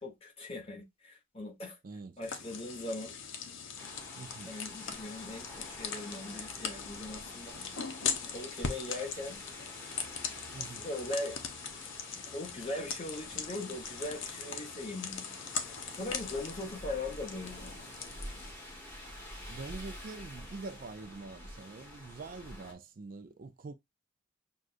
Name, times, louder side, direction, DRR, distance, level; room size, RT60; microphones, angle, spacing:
voice 1, 0.0-1.8 2.2-3.1 4.4-7.6 8.3-9.4 10.8-11.4 12.3-15.3 15.7-17.7, left 2 dB, 30° left, 1.2 m, -40 dB
voice 2, 1.8-2.2 4.2-4.5 10.5-10.9 19.5-23.7, right 3 dB, 45° right, 0.4 m, -45 dB
sound 1, 2.2-18.5, left 6 dB, 75° left, 0.7 m, -40 dB
sound 2, 3.8-22.7, left 1 dB, 10° left, 1.3 m, -48 dB
6.2 x 2.3 x 2.4 m
head